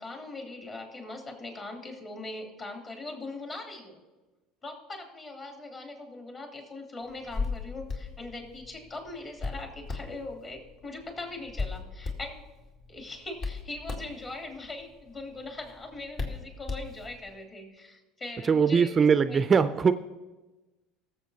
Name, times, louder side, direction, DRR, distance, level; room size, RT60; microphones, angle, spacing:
voice 1, 0.0-4.0 4.6-12.4 12.9-18.9 19.2-19.4, left 2 dB, 35° left, 1 dB, 3.0 m, -41 dB
Hands, 7.1-17.3, left 4 dB, 50° left, 2.2 m, -38 dB
voice 2, 18.4-19.9, right 6 dB, 30° right, 12 dB, 0.4 m, -21 dB
20.0 x 7.3 x 2.8 m, 1.2 s
hypercardioid pair, 80°, 0 cm